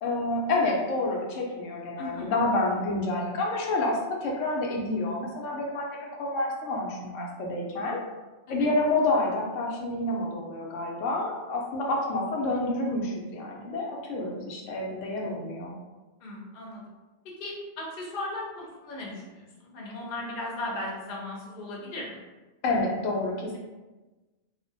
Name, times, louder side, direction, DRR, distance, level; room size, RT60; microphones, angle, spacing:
voice 1, 0.0-8.0 8.5-15.7 22.6-23.6, left 2 dB, 90° left, -2 dB, 0.9 m, -28 dB
voice 2, 2.0-2.3 8.5-8.7 16.2-16.8 17.4-22.2, left 1 dB, 50° left, -3 dB, 0.7 m, -37 dB
2.4 x 2.1 x 2.6 m, 1.2 s
omnidirectional pair, 1.2 m